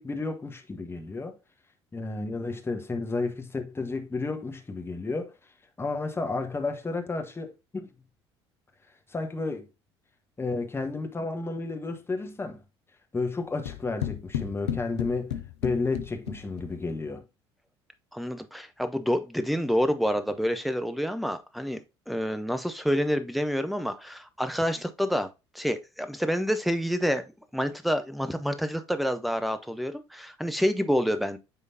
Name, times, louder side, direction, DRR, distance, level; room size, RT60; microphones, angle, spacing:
voice 1, 0.0-1.4 1.9-5.3 5.8-7.9 9.1-9.7 10.4-12.6 13.1-15.3 15.6-17.2, left 3 dB, 15° left, 1.2 m, -32 dB
sound 1, 13.7-16.9, left 10 dB, 75° left, 0.6 m, -34 dB
voice 2, 18.1-21.8 22.1-25.3 25.5-27.2 27.5-31.4, equal, ahead, 0.8 m, -28 dB
9.5 x 3.7 x 2.7 m
figure-of-eight pair, 60°, 14 cm